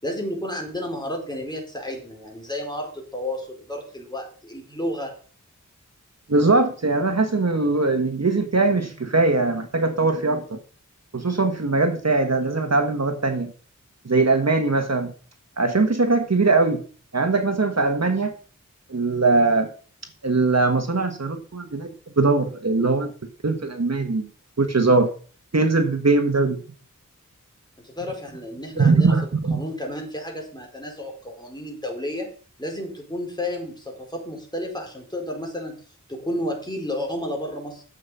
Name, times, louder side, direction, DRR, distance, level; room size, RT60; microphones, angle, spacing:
voice 1, 0.0-5.1 27.8-29.1 29.5-32.3 32.6-35.8 36.1-37.8, left 1 dB, 15° left, 1 dB, 4.4 m, -31 dB
voice 2, 6.3-10.6 11.1-13.5 14.0-15.1 15.6-16.8 17.1-18.3 18.9-19.7 20.2-23.1 23.4-24.3 24.6-25.1 25.5-26.6 28.8-29.6, right 3 dB, 55° right, 6 dB, 1.5 m, -21 dB
11.0 x 7.5 x 5.5 m, 0.41 s
wide cardioid pair, 55°, 32 cm